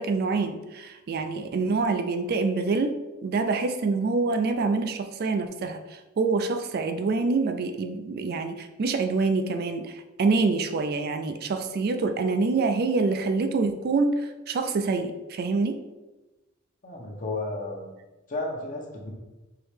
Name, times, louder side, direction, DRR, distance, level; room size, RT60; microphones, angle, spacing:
voice 1, 0.0-15.8, right 3 dB, 50° right, 7 dB, 0.4 m, -26 dB
voice 2, 16.8-17.9 18.3-19.1, left 2 dB, 40° left, 0 dB, 0.9 m, -33 dB
4.7 x 3.1 x 3.2 m, 1.1 s
head